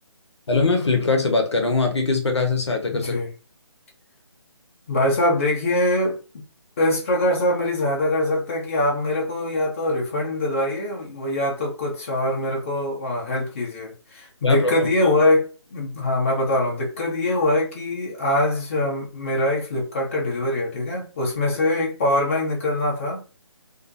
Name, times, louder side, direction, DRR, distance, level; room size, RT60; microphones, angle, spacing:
voice 1, 0.5-3.1 14.4-14.9, left 3 dB, 65° left, 0.8 m, -21 dB
voice 2, 2.9-3.3 4.9-6.2 6.8-23.4, left 1 dB, 25° left, 0.6 m, -23 dB
2.5 x 2.1 x 2.5 m
figure-of-eight pair, 150°, 16 cm